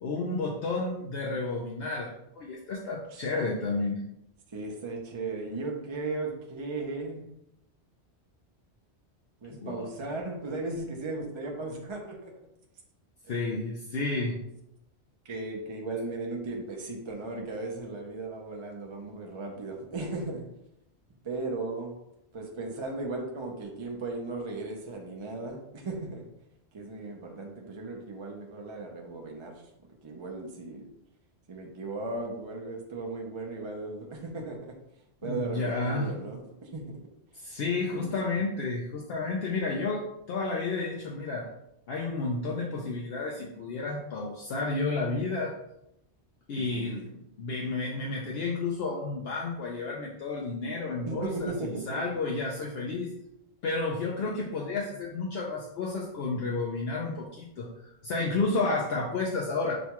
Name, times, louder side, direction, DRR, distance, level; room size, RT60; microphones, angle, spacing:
voice 1, 0.0-4.0 9.6-9.9 13.3-14.4 35.2-36.1 37.3-41.5 41.9-45.5 46.5-53.2 53.6-57.7 58.0-59.7, left 3 dB, 65° left, -2 dB, 0.8 m, -31 dB
voice 2, 4.5-7.2 9.4-12.3 13.3-13.6 15.2-20.4 21.2-22.0 22.3-26.2 26.7-29.6 30.0-30.8 31.5-34.7 35.2-37.0 37.5-37.6 37.9-38.1 46.6-46.9 51.1-52.0, right 3 dB, 35° right, 1 dB, 0.5 m, -36 dB
6.2 x 2.2 x 2.9 m, 0.83 s
omnidirectional pair, 1.1 m